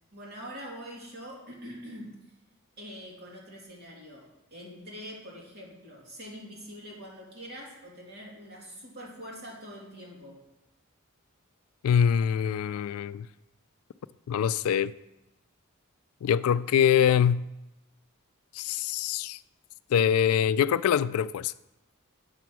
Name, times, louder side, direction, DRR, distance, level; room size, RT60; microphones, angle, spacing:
voice 1, 0.1-2.2 2.8-10.4, equal, 50° right, 2.7 m, -44 dB
voice 2, 11.8-13.3 14.3-14.9 16.2-17.5 18.5-19.4 19.9-21.5, left 8 dB, 90° left, 0.3 m, -24 dB
8.2 x 5.8 x 6.1 m
head